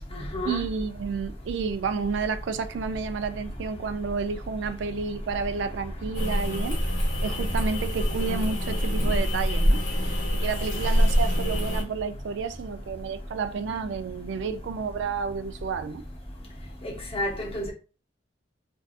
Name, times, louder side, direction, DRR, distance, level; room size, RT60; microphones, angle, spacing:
voice 1, 0.4-6.8 7.2-9.8 10.3-16.0, right 5 dB, 75° right, 0.3 m, -30 dB
sound 1, 6.1-11.8, equal, 90° left, 1.0 m, -25 dB
voice 2, 16.8-17.7, left 1 dB, 30° left, 0.8 m, -30 dB
2.6 x 2.3 x 2.4 m
head